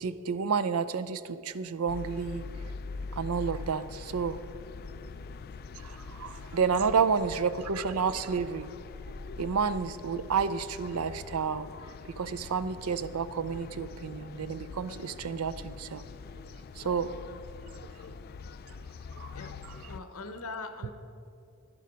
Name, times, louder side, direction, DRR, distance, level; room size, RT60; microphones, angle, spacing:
voice 1, 0.0-2.5 3.1-4.4 5.8-8.7 9.4-11.7 12.1-16.0 16.8-17.1 19.2-19.3, right 6 dB, 85° right, 13 dB, 0.5 m, -30 dB
sound 1, 1.9-20.0, left 4 dB, 45° left, 0.3 m, -43 dB
voice 2, 19.9-20.9, left 3 dB, 75° left, 9 dB, 0.9 m, -41 dB
11.0 x 10.5 x 5.2 m, 2.7 s
head